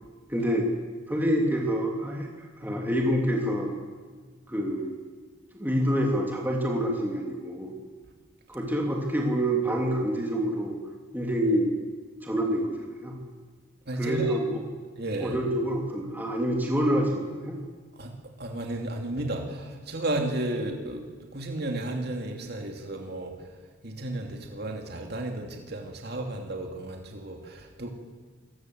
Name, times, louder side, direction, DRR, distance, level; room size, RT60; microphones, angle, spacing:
voice 1, 0.3-0.7 1.1-2.3 2.6-3.7 4.5-4.9 5.5-7.7 8.5-10.8 11.1-11.7 12.2-13.2 14.0-14.6 15.2-17.6, equal, 10° right, 0 dB, 3.0 m, -27 dB
voice 2, 13.9-14.4 15.0-15.4 18.0-18.1 18.4-23.5 23.8-27.9, right 2 dB, 55° right, 2 dB, 2.7 m, -33 dB
26.5 x 19.5 x 7.9 m, 1.5 s
head